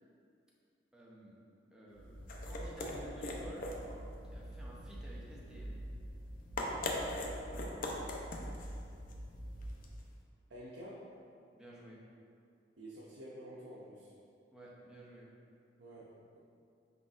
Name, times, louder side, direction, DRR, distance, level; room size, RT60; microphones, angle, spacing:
voice 1, 0.9-1.4 1.7-3.7 4.3-5.8 11.5-12.0 14.5-15.3, right 1 dB, 5° right, -5 dB, 0.7 m, -52 dB
sound 1, 1.9-10.1, left 1 dB, 50° left, 0.5 m, -41 dB
voice 2, 10.5-11.1 12.8-14.1 15.8-16.4, equal, 85° right, -6 dB, 0.6 m, -49 dB
4.7 x 3.8 x 2.5 m, 2.4 s
head